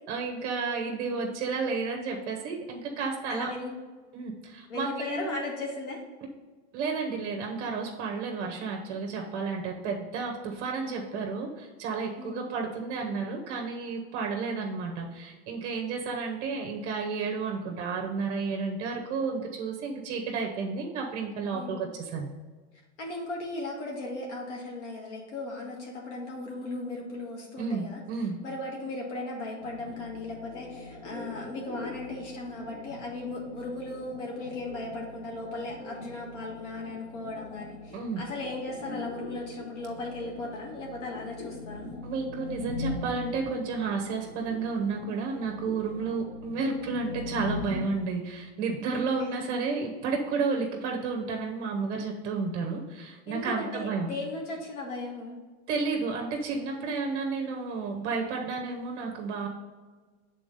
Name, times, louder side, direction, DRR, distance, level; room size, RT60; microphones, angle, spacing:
voice 1, 0.1-3.5 4.1-5.3 6.7-22.3 27.6-28.4 37.9-38.2 42.0-54.1 55.7-59.5, right 4 dB, 30° right, 1 dB, 0.8 m, -32 dB
voice 2, 3.3-3.7 4.7-6.0 12.2-12.5 21.5-21.9 23.0-41.9 46.0-46.1 49.2-49.3 53.3-55.4, left 2 dB, 85° left, -1 dB, 1.8 m, -37 dB
sound 1, 29.6-48.0, left 2 dB, 45° left, 1.1 m, -41 dB
7.0 x 3.7 x 5.3 m, 1.4 s
supercardioid pair, 165°, 35 cm